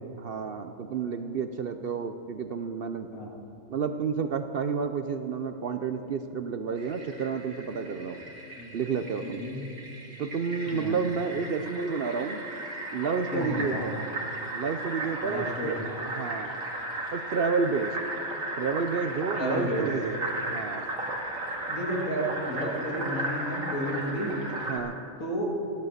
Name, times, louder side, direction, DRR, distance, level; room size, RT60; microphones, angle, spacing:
voice 1, 0.2-3.1 3.7-8.2 8.7-9.4 10.2-12.4 12.9-14.0 14.5-15.8 16.1-16.5 17.1-18.0 18.6-20.9 24.7-24.9, right 5 dB, 55° right, 8 dB, 0.7 m, -30 dB
Fill (with liquid), 6.8-24.8, right 1 dB, 85° right, 2.4 m, -36 dB
voice 2, 9.2-9.6 10.6-11.0 13.3-13.8 15.2-15.8 19.3-19.9 21.7-24.3 25.2-25.5, equal, 80° left, -2 dB, 2.8 m, -32 dB
15.5 x 11.5 x 6.6 m, 2.9 s
omnidirectional pair, 1.4 m